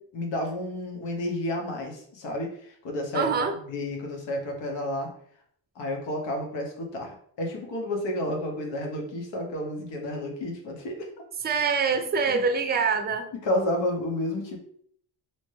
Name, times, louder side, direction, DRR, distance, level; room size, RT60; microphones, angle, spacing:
voice 1, 0.1-5.1 5.8-11.1 12.3-12.4 13.4-14.6, left 1 dB, 85° left, 2 dB, 0.9 m, -31 dB
voice 2, 3.1-3.5 11.4-13.3, right 5 dB, 25° right, 7 dB, 0.4 m, -25 dB
2.8 x 2.2 x 3.1 m, 0.64 s
cardioid pair, 65°, 43 cm